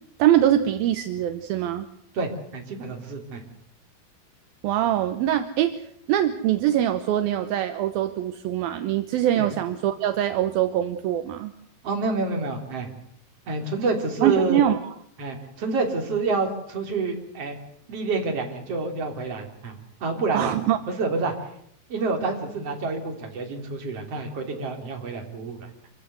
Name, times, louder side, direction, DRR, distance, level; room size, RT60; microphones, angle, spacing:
voice 1, 0.2-1.9 4.6-5.8 6.1-11.5 14.2-14.8 20.3-20.8, right 11 dB, 75° right, 9 dB, 2.7 m, -23 dB
voice 2, 2.1-3.4 9.3-9.5 11.8-12.9 13.5-14.6 15.2-17.6 17.9-20.6 20.9-21.3 21.9-25.7, right 3 dB, 40° right, 3 dB, 4.0 m, -28 dB
26.0 x 16.0 x 8.0 m, 0.70 s
omnidirectional pair, 4.4 m